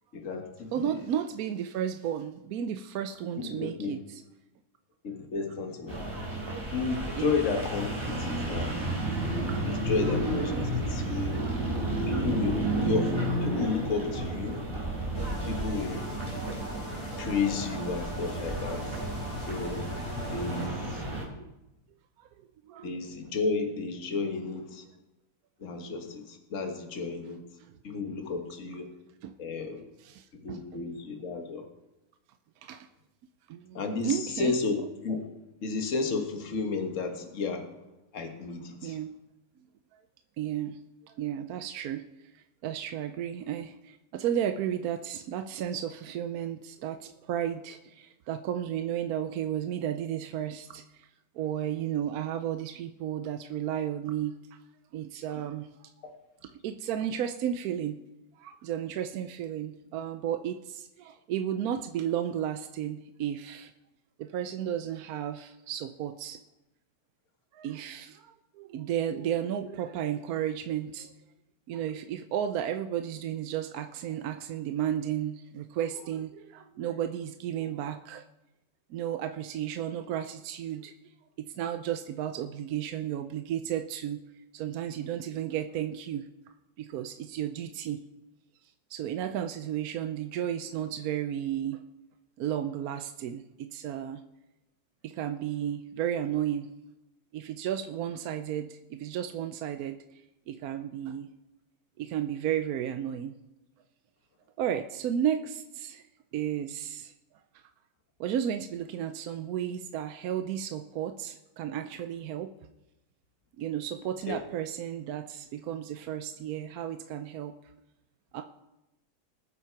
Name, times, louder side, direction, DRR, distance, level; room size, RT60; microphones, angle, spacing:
voice 1, 0.1-1.1 3.4-4.0 5.0-6.1 6.7-8.7 9.6-11.6 12.1-13.2 13.4-14.7 15.5-16.1 17.2-19.1 19.4-19.9 20.3-21.1 22.8-24.8 25.6-27.4 27.8-28.9 29.4-29.9 30.3-31.7 33.7-35.2 35.6-37.8 38.1-39.0 114.3-114.4, left 4 dB, 45° left, 4 dB, 1.7 m, -32 dB
voice 2, 0.7-4.0 6.3-6.4 7.2-7.3 9.5-9.6 11.4-11.6 15.1-15.3 21.4-21.5 22.2-22.3 22.7-22.9 29.2-29.3 30.0-30.6 32.6-32.9 33.5-33.8 34.0-34.5 38.8-39.2 40.4-42.0 42.3-51.1 51.4-54.3 54.9-55.9 56.6-58.0 58.4-63.7 64.2-66.4 67.5-71.1 71.7-78.2 78.9-80.9 81.4-84.2 84.5-86.3 86.8-88.0 88.9-91.9 92.4-94.2 95.0-96.7 97.3-101.3 102.0-103.3 104.6-106.0 106.3-107.1 108.2-112.5 113.6-117.6 118.3-118.4, right 10 dB, 70° right, 7 dB, 0.9 m, -33 dB
sound 1, 5.9-21.2, right 1 dB, 15° right, 3.4 m, -32 dB
sound 2, 15.1-20.7, left 1 dB, 65° left, 5.6 m, -43 dB
20.5 x 7.4 x 4.6 m, 0.96 s
omnidirectional pair, 1.9 m